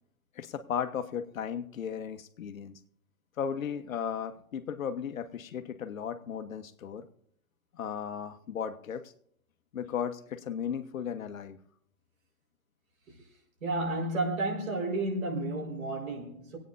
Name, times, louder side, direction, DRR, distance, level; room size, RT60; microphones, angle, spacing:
voice 1, 0.3-2.8 3.4-7.1 7.7-9.1 9.7-11.6, left 8 dB, 70° left, 1.3 m, -35 dB
voice 2, 13.6-16.6, right 2 dB, 70° right, 5.1 m, -31 dB
26.0 x 9.1 x 2.7 m
hypercardioid pair, 150°, 42 cm